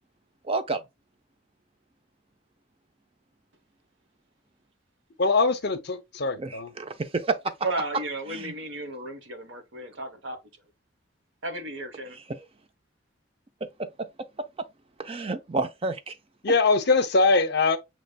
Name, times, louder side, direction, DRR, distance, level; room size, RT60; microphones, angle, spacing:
voice 1, 0.4-0.8 6.4-7.5 8.3-8.5 12.1-12.4 13.8-13.9 15.0-16.1, right 3 dB, 30° right, 0.5 m, -30 dB
voice 2, 5.2-6.7 16.4-17.8, left 3 dB, 55° left, 0.7 m, -22 dB
voice 3, 7.6-10.4 11.4-12.2, right 2 dB, 70° right, 1.1 m, -34 dB
6.5 x 3.1 x 2.3 m
head